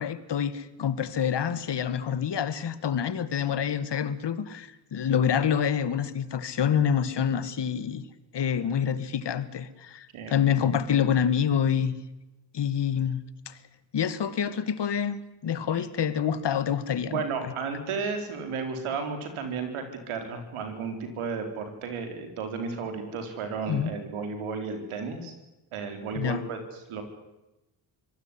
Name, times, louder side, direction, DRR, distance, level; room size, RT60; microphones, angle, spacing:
voice 1, 0.0-8.1 8.3-11.9 12.5-13.6 13.9-17.2 23.7-23.9 26.2-26.4, left 8 dB, 55° left, 14 dB, 2.1 m, -27 dB
voice 2, 10.1-10.8 15.7-15.8 17.0-25.3 25.7-27.0, right 5 dB, 80° right, 6 dB, 4.3 m, -33 dB
25.0 x 16.0 x 9.9 m, 1.0 s
supercardioid pair, 55°, 49 cm